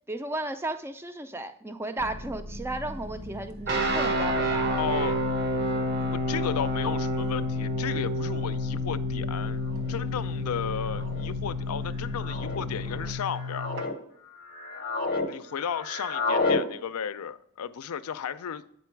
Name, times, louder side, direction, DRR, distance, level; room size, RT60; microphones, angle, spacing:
voice 1, 0.1-4.8, right 2 dB, 10° right, 0.4 m, -34 dB
sound 1, 2.0-13.1, equal, 70° right, 1.0 m, -40 dB
sound 2, 3.7-13.8, left 1 dB, 50° right, 0.8 m, -29 dB
voice 2, 4.8-5.2 6.1-9.6 9.9-13.7 15.3-18.6, left 7 dB, 80° left, 0.4 m, -34 dB
sound 3, 8.6-8.7 9.7-10.0 10.9-11.3 12.2-12.6 13.2-13.9 14.4-15.3 15.5-16.6, left 3 dB, 45° left, 0.7 m, -30 dB
8.3 x 5.3 x 4.5 m
head